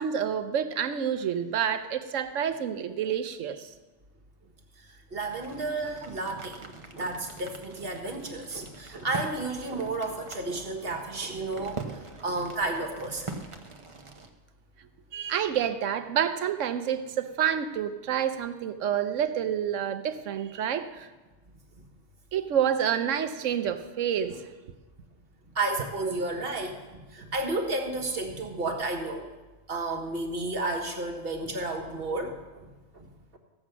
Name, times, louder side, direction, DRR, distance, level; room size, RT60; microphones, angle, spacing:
voice 1, 0.0-3.7 15.1-21.1 22.3-24.4, right 9 dB, 80° right, 10 dB, 1.1 m, -28 dB
voice 2, 5.1-13.3 25.6-29.3 29.7-32.7 32.9-33.4, right 2 dB, 50° right, 4 dB, 1.7 m, -32 dB
sound 1, 5.3-14.3, right 3 dB, 30° right, 0.9 m, -43 dB
15.0 x 7.7 x 6.1 m, 1.2 s
omnidirectional pair, 1.3 m